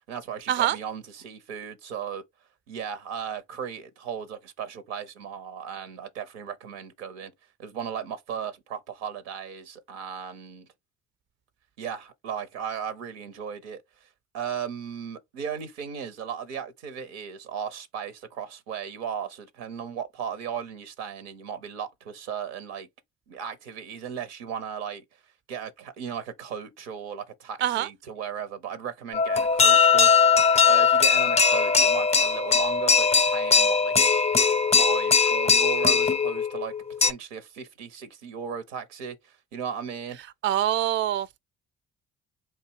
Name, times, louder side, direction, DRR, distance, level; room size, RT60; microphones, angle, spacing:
voice 1, 0.1-2.2 2.7-7.3 7.6-10.7 11.8-14.1 14.3-22.9 23.3-25.0 25.5-33.9 34.8-40.2, right 7 dB, 85° right, 0.8 m, -36 dB
sound 1, 29.1-37.1, left 5 dB, 20° left, 0.5 m, -20 dB
voice 2, 40.4-41.4, right 11 dB, 35° right, 0.4 m, -24 dB
3.7 x 2.7 x 4.5 m
hypercardioid pair, 45°, 32 cm